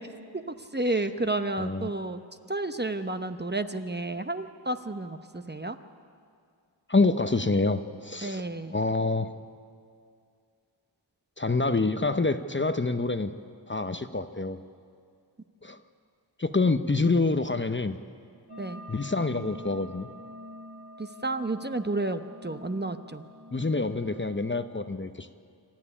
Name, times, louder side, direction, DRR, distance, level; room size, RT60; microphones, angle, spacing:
voice 1, 0.7-2.2 2.5-5.8 8.2-8.8 18.6-18.8 21.0-23.3, right 2 dB, 25° right, 8 dB, 0.9 m, -31 dB
voice 2, 1.6-1.9 6.9-8.4 8.7-9.3 11.4-13.3 13.7-14.6 15.6-15.8 16.4-18.0 18.9-20.1 23.5-25.3, left 3 dB, 25° left, 9 dB, 0.8 m, -26 dB
sound 1, 18.5-24.8, left 1 dB, 60° right, 5.7 m, -46 dB
26.5 x 13.5 x 9.9 m, 2.3 s
wide cardioid pair, 75°, 44 cm